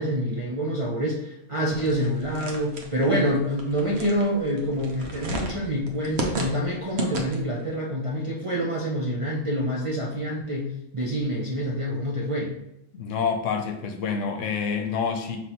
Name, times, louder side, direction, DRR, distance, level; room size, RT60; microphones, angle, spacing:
voice 1, 0.0-12.5, equal, 40° right, -5 dB, 0.4 m, -27 dB
sound 1, 1.8-7.6, right 1 dB, 60° right, 1.0 m, -33 dB
voice 2, 12.9-15.4, left 6 dB, 80° left, 5 dB, 1.0 m, -27 dB
5.3 x 3.0 x 2.9 m, 0.83 s
omnidirectional pair, 1.3 m